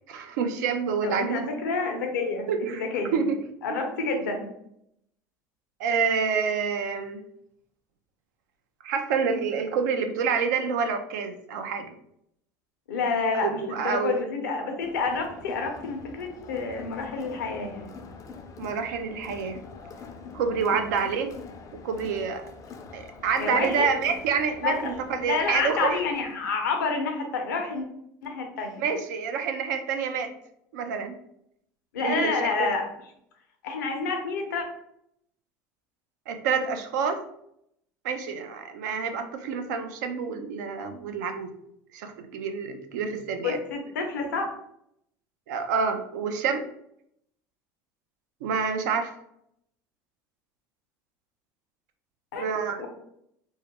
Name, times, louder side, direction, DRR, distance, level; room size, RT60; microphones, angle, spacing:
voice 1, 0.1-1.5 2.5-3.4 4.0-4.2 5.8-7.2 8.8-11.9 13.3-14.2 18.6-19.6 20.3-21.3 21.7-22.4 22.9-26.0 28.8-30.3 30.7-31.2 32.0-32.5 36.3-37.2 38.0-41.5 41.9-43.6 45.5-46.6 48.4-49.1 52.4-52.8, right 6 dB, 80° right, 7 dB, 0.4 m, -28 dB
voice 2, 1.0-2.5 2.7-3.2 3.6-4.5 12.9-17.9 20.5-20.7 23.4-23.9 24.6-24.8 25.3-27.9 28.2-28.8 31.9-32.8 33.6-34.6 43.4-44.5 52.3-52.5 52.8-52.9, left 4 dB, 90° left, 4 dB, 0.5 m, -29 dB
Crowd, 14.8-26.4, left 5 dB, 35° left, 0.3 m, -44 dB
2.3 x 2.1 x 2.8 m, 0.74 s
hypercardioid pair, 85°, 10 cm